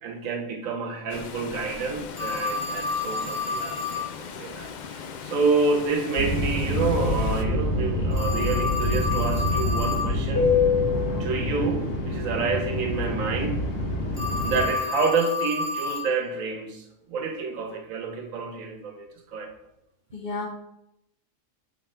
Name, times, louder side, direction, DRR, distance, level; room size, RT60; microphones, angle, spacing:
voice 1, 0.0-10.5 11.2-13.6 14.4-19.5, right 4 dB, 80° right, 4 dB, 1.3 m, -28 dB
Water, 1.1-7.4, left 6 dB, 85° left, 0.4 m, -39 dB
Telephone, 2.2-4.1 8.1-10.1 14.1-16.1, left 4 dB, 15° left, 1.9 m, -30 dB
sound 1, 6.2-14.7, left 2 dB, 60° left, 1.3 m, -26 dB
voice 2, 20.1-20.5, left 3 dB, 40° left, 1 dB, 1.0 m, -33 dB
7.7 x 3.6 x 4.5 m, 0.86 s
omnidirectional pair, 1.4 m